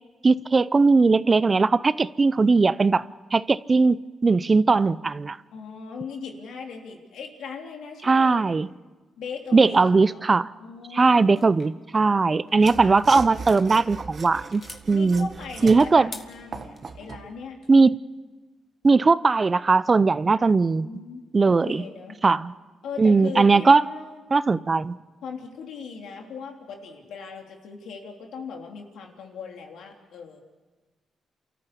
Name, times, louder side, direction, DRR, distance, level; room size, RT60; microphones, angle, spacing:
voice 1, 0.2-3.0 3.3-5.4 8.0-8.7 9.5-10.5 10.9-15.3 15.6-16.1 17.7-17.9 18.8-20.9 21.3-21.8 22.2-22.5 23.0-23.8 24.3-25.0, right 4 dB, 30° right, 0.6 m, -19 dB
voice 2, 5.5-8.5 9.2-10.2 10.6-11.5 14.9-17.6 20.4-22.2 22.8-24.2 25.2-30.4, left 5 dB, 80° left, 3.3 m, -39 dB
sound 1, 11.4-13.7 14.1-14.9 15.9-16.8, left 4 dB, 40° left, 2.1 m, -45 dB
Mechanisms / Sawing, 12.6-17.3, right 5 dB, 50° right, 1.6 m, -39 dB
29.0 x 14.0 x 8.4 m
cardioid pair, 85°, 0 cm